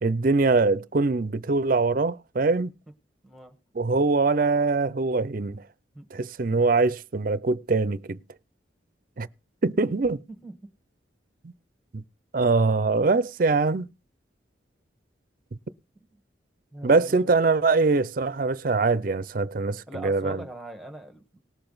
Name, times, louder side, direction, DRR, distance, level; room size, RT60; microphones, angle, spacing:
voice 1, 0.0-2.7 3.7-5.6 6.1-8.2 9.2-9.3 9.6-10.2 11.4-11.5 11.9-12.0 12.3-13.9 16.8-20.4, right 3 dB, 45° right, 0.5 m, -23 dB
voice 2, 3.2-3.5 5.9-6.1 10.4-10.5 16.0-16.1 16.7-17.2 19.9-21.4, right 1 dB, ahead, 1.2 m, -41 dB
18.5 x 6.8 x 3.9 m
head